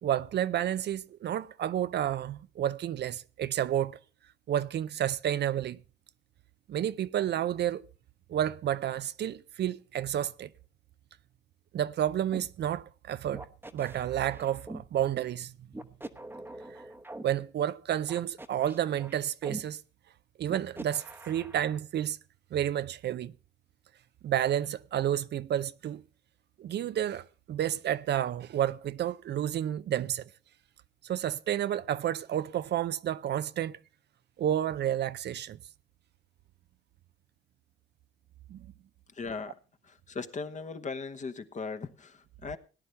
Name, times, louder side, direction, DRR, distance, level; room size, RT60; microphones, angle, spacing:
voice 1, 0.0-4.0 4.5-5.8 6.7-7.8 8.3-10.5 11.7-13.5 13.7-15.5 17.2-19.8 20.4-22.2 22.5-23.3 24.2-26.0 26.6-30.2 31.0-33.8 34.4-35.6 38.5-38.7, right 11 dB, 60° right, 0.5 m, -30 dB
sound 1, 12.3-12.5 13.3-14.9 15.7-17.2 18.1-19.6 20.5-21.8, right 1 dB, 10° right, 0.9 m, -44 dB
voice 2, 39.2-39.5 40.1-42.6, left 4 dB, 35° left, 1.1 m, -38 dB
18.0 x 10.0 x 3.3 m
cardioid pair, 90°, 20 cm